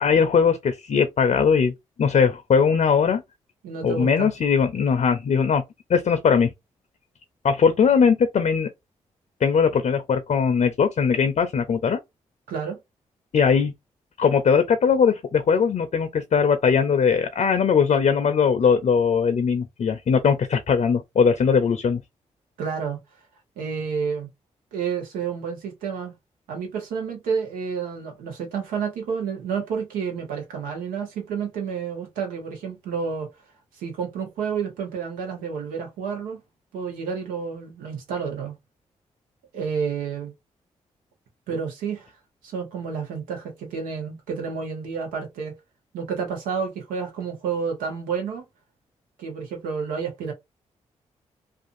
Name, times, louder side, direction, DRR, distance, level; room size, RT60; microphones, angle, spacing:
voice 1, 0.0-1.7 2.0-3.2 3.8-5.6 5.9-6.5 7.4-8.7 9.4-12.0 13.3-13.7 14.2-22.0, left 6 dB, 55° left, 0.5 m, -20 dB
voice 2, 3.6-4.3 12.5-12.8 22.6-23.0 23.6-24.3 24.7-26.1 26.5-33.3 33.7-36.4 36.7-38.5 39.5-40.3 41.5-42.1 42.4-45.6 45.9-48.4 49.2-50.3, right 6 dB, 90° right, 1.0 m, -30 dB
2.5 x 2.4 x 2.5 m
supercardioid pair, 45°, 14 cm